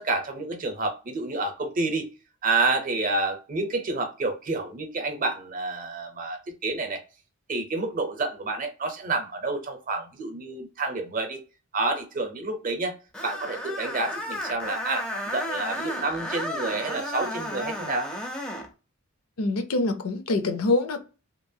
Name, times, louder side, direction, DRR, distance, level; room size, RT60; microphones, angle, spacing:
voice 1, 0.0-2.1 2.4-7.0 7.5-11.4 11.7-13.0 13.2-18.1, right 3 dB, 40° right, 0.6 m, -29 dB
Screech, 13.1-18.7, left 1 dB, 5° left, 0.4 m, -33 dB
voice 2, 19.4-21.0, left 2 dB, 80° left, 0.6 m, -25 dB
2.9 x 2.2 x 2.6 m
head